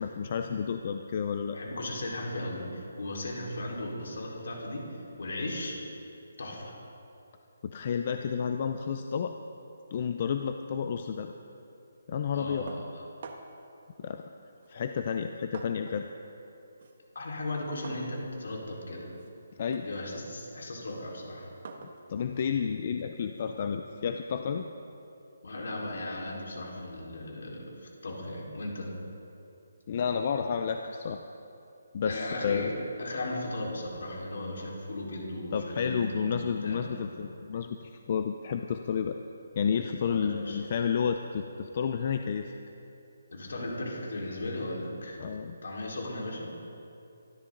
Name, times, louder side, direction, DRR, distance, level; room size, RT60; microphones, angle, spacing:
voice 1, 0.0-1.6 7.6-9.3 9.9-11.3 12.1-12.7 14.0-14.3 14.7-16.0 19.6-19.9 22.1-24.6 29.9-31.2 31.9-32.7 35.5-39.2 39.6-42.5 45.2-45.6, left 7 dB, 30° left, 6 dB, 0.5 m, -31 dB
voice 2, 1.5-5.8 6.4-6.8 12.3-13.0 17.1-19.1 19.8-21.5 25.4-28.9 32.0-37.0 40.0-40.6 43.3-45.2 45.6-46.5, left 1 dB, 65° left, -2 dB, 4.5 m, -36 dB
sound 1, 12.7-13.7 14.6-16.1 16.4-23.8, right 4 dB, 40° right, 1.4 m, -49 dB
24.5 x 13.0 x 4.0 m, 2.8 s
hypercardioid pair, 175°, 0 cm